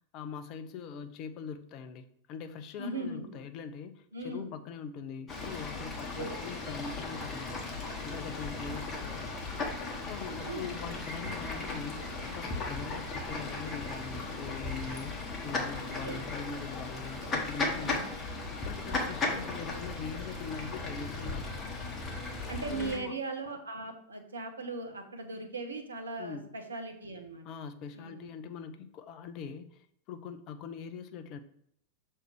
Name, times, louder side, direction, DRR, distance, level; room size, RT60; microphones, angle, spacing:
voice 1, 0.1-7.8 8.0-9.3 10.0-18.1 18.6-21.8 22.7-23.1 26.2-26.5 27.4-31.4, left 6 dB, 40° left, 9 dB, 0.6 m, -42 dB
voice 2, 2.8-3.4 4.1-4.5 6.2-6.4 8.5-8.8 10.2-10.9 12.8-13.0 15.9-16.2 17.8-18.1 22.5-27.4 27.9-28.3, right 3 dB, 75° right, 4 dB, 0.9 m, -39 dB
Fowl / Bird, 5.3-23.0, left 3 dB, 25° left, 1.3 m, -36 dB
6.4 x 3.3 x 4.7 m, 0.69 s
figure-of-eight pair, 90°, 0 cm